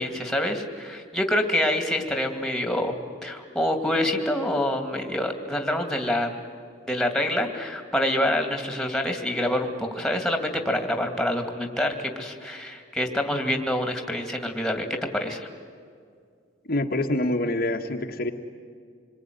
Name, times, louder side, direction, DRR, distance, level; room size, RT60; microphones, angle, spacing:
voice 1, 0.0-2.9 3.2-6.4 6.9-14.8 15.1-15.5, left 1 dB, ahead, 4 dB, 2.5 m, -26 dB
voice 2, 16.7-18.3, left 1 dB, 55° left, 3 dB, 1.4 m, -26 dB
26.5 x 22.0 x 9.5 m, 2.2 s
head